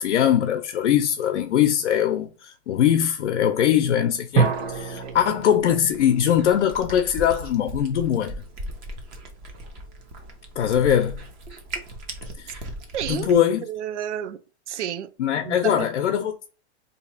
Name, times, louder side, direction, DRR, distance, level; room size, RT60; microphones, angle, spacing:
voice 1, 0.0-8.4 10.6-11.2 12.4-12.5 13.1-13.6 15.2-16.5, left 9 dB, 80° left, 0.6 m, -21 dB
sound 1, 4.3-7.1, right 5 dB, 45° right, 0.8 m, -27 dB
Cat, 4.4-13.4, right 1 dB, 20° right, 0.4 m, -39 dB
voice 2, 12.9-13.3 13.6-14.4 14.7-15.1 15.4-15.9, right 10 dB, 85° right, 0.6 m, -31 dB
2.9 x 2.4 x 4.2 m
hypercardioid pair, 150°, 34 cm